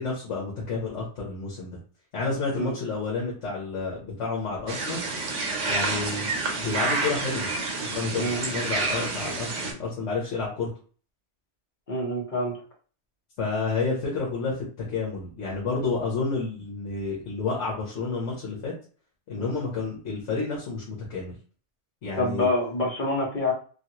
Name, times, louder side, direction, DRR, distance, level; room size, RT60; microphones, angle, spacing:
voice 1, 0.0-1.8 2.1-5.0 5.6-7.5 7.9-10.7 13.4-18.7 19.3-21.4 22.0-22.5, left 4 dB, 75° left, -3 dB, 1.2 m, -30 dB
sound 1, 4.7-9.7, right 3 dB, 75° right, 1.1 m, -29 dB
voice 2, 11.9-12.5 19.4-19.6 22.2-23.5, left 1 dB, 40° left, -3 dB, 1.1 m, -26 dB
3.1 x 2.4 x 2.8 m, 0.40 s
omnidirectional pair, 1.3 m